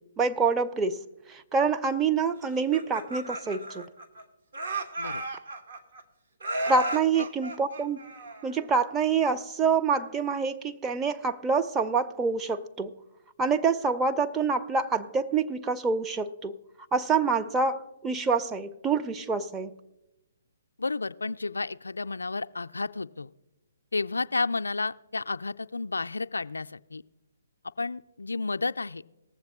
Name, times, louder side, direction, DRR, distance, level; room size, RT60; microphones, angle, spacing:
voice 1, 0.2-1.0 1.3-3.9 6.7-8.0 8.4-12.9 13.4-16.6 16.9-19.8, right 5 dB, 15° right, 8 dB, 0.5 m, -26 dB
Laughter, 2.5-4.2 4.5-6.0 6.4-8.7, right 2 dB, 60° right, 1.2 m, -34 dB
voice 2, 20.8-23.3 23.9-27.0 27.8-29.0, left 3 dB, 80° left, 10 dB, 0.3 m, -31 dB
19.5 x 7.5 x 3.6 m, 0.98 s
figure-of-eight pair, 130°, 0 cm